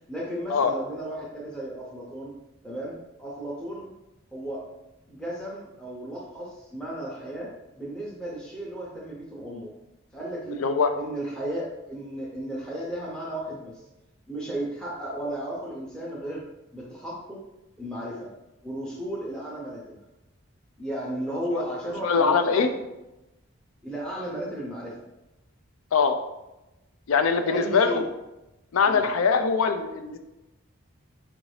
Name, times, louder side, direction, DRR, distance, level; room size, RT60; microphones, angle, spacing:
voice 1, 0.1-2.3 2.6-3.9 4.3-4.6 5.1-9.7 10.1-10.6 10.9-13.8 14.3-16.4 16.7-17.4 17.8-18.3 18.6-20.0 20.8-22.6 23.8-25.0 27.4-28.1 28.9-29.1, right 1 dB, 5° left, -5 dB, 0.6 m, -34 dB
voice 2, 10.5-10.9 21.5-21.6 22.0-22.7 25.9-26.2 27.1-28.0 28.7-30.2, left 5 dB, 75° left, 8 dB, 0.4 m, -22 dB
4.7 x 2.6 x 3.2 m, 0.98 s
head